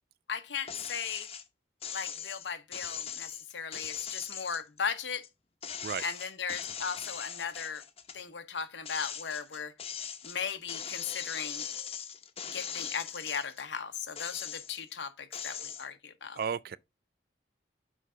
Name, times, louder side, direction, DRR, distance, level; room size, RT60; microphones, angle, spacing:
voice 1, 0.3-1.3 1.9-5.3 6.0-7.8 8.1-9.7 10.2-11.7 12.5-16.4, left 6 dB, 85° left, 0.9 m, -37 dB
sound 1, 0.7-1.4 1.8-5.3 5.6-8.2 8.6-13.6 14.1-14.9 15.3-15.9, left 8 dB, 35° left, 0.7 m, -40 dB
voice 2, 16.4-16.8, right 7 dB, 55° right, 0.3 m, -33 dB
6.2 x 4.7 x 3.7 m
head